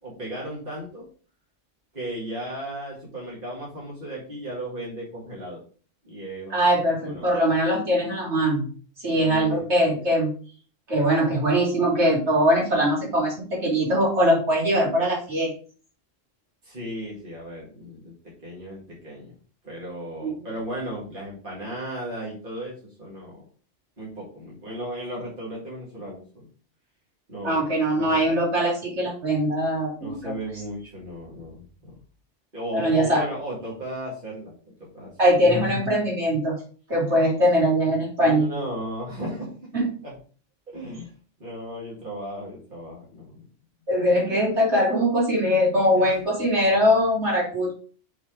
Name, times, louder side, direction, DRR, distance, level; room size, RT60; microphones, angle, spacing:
voice 1, 0.0-1.1 1.9-5.6 6.0-6.6 7.0-7.3 9.1-10.1 16.6-19.3 19.6-23.4 24.0-26.5 27.3-27.6 27.9-28.3 30.0-32.0 32.5-34.5 34.9-35.1 38.2-39.5 39.8-40.2 40.7-41.1 41.4-43.4 46.0-46.2 46.6-46.7, right 1 dB, 45° right, -5 dB, 2.2 m, -35 dB
voice 2, 6.5-8.7 9.0-10.3 10.9-15.5 20.2-20.3 27.4-30.3 32.7-33.2 35.2-36.5 36.9-38.5 39.7-39.9 43.9-47.7, equal, 65° right, -4 dB, 3.1 m, -21 dB
6.2 x 3.7 x 4.9 m, 0.41 s
omnidirectional pair, 1.2 m